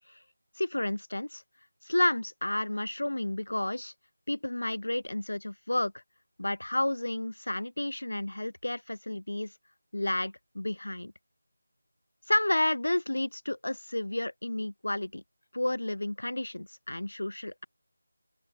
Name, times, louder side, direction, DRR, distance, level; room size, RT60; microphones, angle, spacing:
voice 1, 0.6-1.4 1.8-3.9 4.3-5.9 6.4-9.5 9.9-11.1 12.3-15.2 15.5-17.7, left 1 dB, 75° left, 1.0 m, -31 dB
open air
figure-of-eight pair, 165°, 0 cm